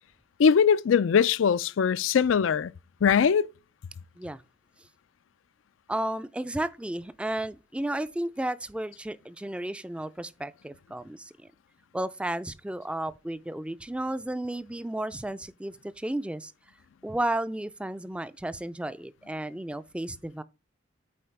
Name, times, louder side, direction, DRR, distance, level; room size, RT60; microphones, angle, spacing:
voice 1, 0.4-2.7 3.0-3.5, left 7 dB, 85° left, 0.4 m, -21 dB
voice 2, 5.9-11.3 11.9-16.5 17.0-20.4, right 1 dB, 5° right, 0.3 m, -33 dB
8.5 x 4.3 x 3.3 m
head